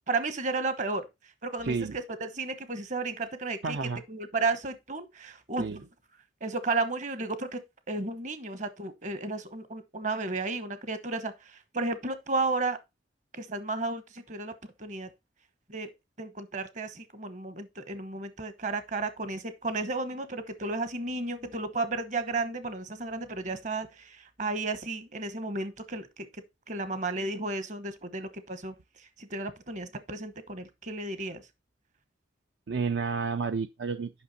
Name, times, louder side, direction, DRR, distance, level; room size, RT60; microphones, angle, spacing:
voice 1, 0.1-1.1 1.4-3.8 4.1-5.8 6.4-7.6 7.9-12.8 13.3-14.5 14.8-15.1 15.7-15.9 16.2-26.3 26.7-28.7 29.2-31.4, right 3 dB, 40° right, 1.1 m, -33 dB
voice 2, 1.6-2.0 3.6-4.0 5.6-5.8 32.7-34.1, right 5 dB, 65° right, 0.5 m, -30 dB
8.5 x 5.8 x 4.1 m
head